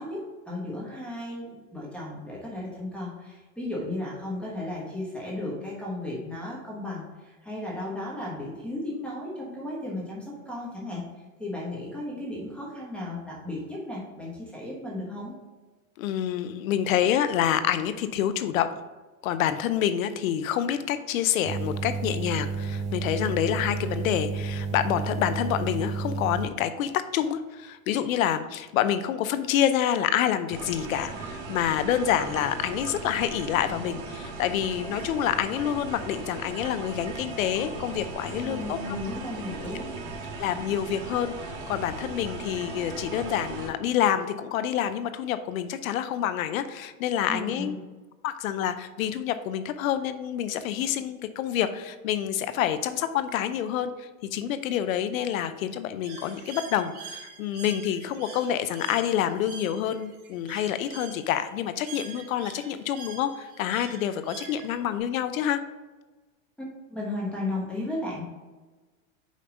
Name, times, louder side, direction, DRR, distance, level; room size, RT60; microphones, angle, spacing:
voice 1, 0.0-15.3 38.4-39.9 47.3-47.8 66.9-68.2, left 1 dB, 5° left, -6 dB, 1.1 m, -35 dB
voice 2, 16.0-18.7 19.2-38.8 40.4-47.7 48.2-65.6, left 10 dB, 80° left, 11 dB, 0.6 m, -27 dB
sound 1, 21.4-26.5, right 4 dB, 20° right, 0.4 m, -31 dB
sound 2, 30.5-43.7, right 3 dB, 70° right, 1.6 m, -38 dB
Bird, 56.0-65.0, right 5 dB, 50° right, 1.4 m, -45 dB
5.2 x 4.3 x 5.0 m, 1.3 s
supercardioid pair, 150°, 41 cm